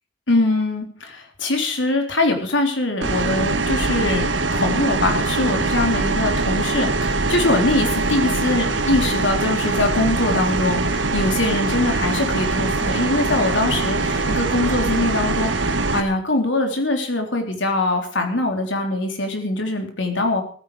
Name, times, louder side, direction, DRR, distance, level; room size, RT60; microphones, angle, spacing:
voice 1, 0.3-20.4, left 2 dB, 85° left, 4 dB, 3.6 m, -22 dB
sound 1, 3.0-16.0, right 3 dB, 80° right, 1.7 m, -22 dB
15.5 x 15.0 x 5.0 m, 0.43 s
head